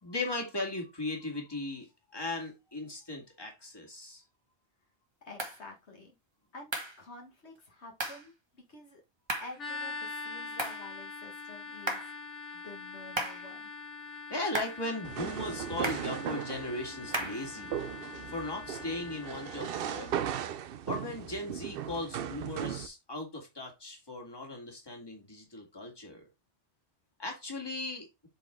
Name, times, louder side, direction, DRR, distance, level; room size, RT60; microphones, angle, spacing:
voice 1, 0.0-1.9 2.1-4.2 14.3-17.7 18.3-20.4 20.9-26.2 27.2-28.1, left 2 dB, 20° left, 2.0 m, -37 dB
voice 2, 5.2-6.1 6.5-9.0 9.4-12.1 12.5-13.7, left 2 dB, 70° left, 1.8 m, -49 dB
sound 1, 5.4-5.6 6.7-7.0 8.0-8.3 9.3-9.6 10.6-10.9 11.9-12.2 13.2-13.5 14.5-14.8 15.8-16.1 17.1-17.5, right 1 dB, 25° right, 1.2 m, -35 dB
sound 2, 9.6-20.2, left 4 dB, 90° left, 1.9 m, -43 dB
sound 3, 15.0-22.9, right 9 dB, 60° right, 0.7 m, -37 dB
7.6 x 4.2 x 3.6 m
omnidirectional pair, 1.2 m